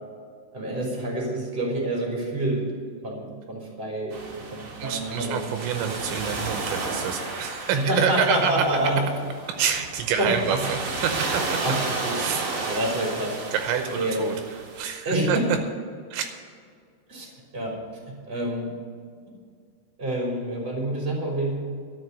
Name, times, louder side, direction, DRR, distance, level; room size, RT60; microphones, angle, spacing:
voice 1, 0.5-2.6 3.0-5.4 7.7-9.0 10.2-10.6 11.6-12.4 12.6-13.5 13.9-14.2 15.0-15.4 17.1-17.3 17.5-17.8 18.1-18.7 20.0-21.5, right 1 dB, 15° right, -2 dB, 2.9 m, -27 dB
sound 1, 4.1-14.8, right 3 dB, 55° right, 1.5 m, -33 dB
voice 2, 4.8-8.6 9.6-11.4 12.2-12.5 13.5-14.4 14.8-15.4 16.1-16.3, right 8 dB, 80° right, 6 dB, 3.1 m, -27 dB
12.5 x 6.5 x 9.7 m, 2.1 s
omnidirectional pair, 5.3 m